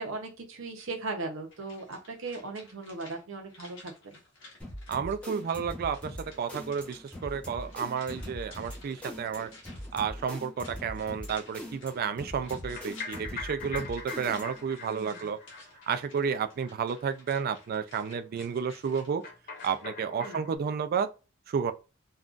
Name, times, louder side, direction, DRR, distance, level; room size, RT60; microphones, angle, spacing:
voice 1, 0.0-3.9 14.9-15.3 20.2-20.4, right 3 dB, 65° right, 0.7 m, -38 dB
sound 1, 1.5-19.9 20.2-20.3, left 2 dB, 65° left, 1.2 m, -55 dB
sound 2, 4.6-14.7, left 1 dB, 5° left, 0.8 m, -42 dB
voice 2, 4.9-9.5 9.9-15.4 15.9-19.2 19.6-21.1 21.5-21.7, right 6 dB, 45° right, 0.3 m, -31 dB
sound 3, 12.5-17.1 17.3-17.4 17.7-17.8 18.1-18.2 19.2-20.6, left 4 dB, 45° left, 0.7 m, -43 dB
3.7 x 2.3 x 2.4 m
head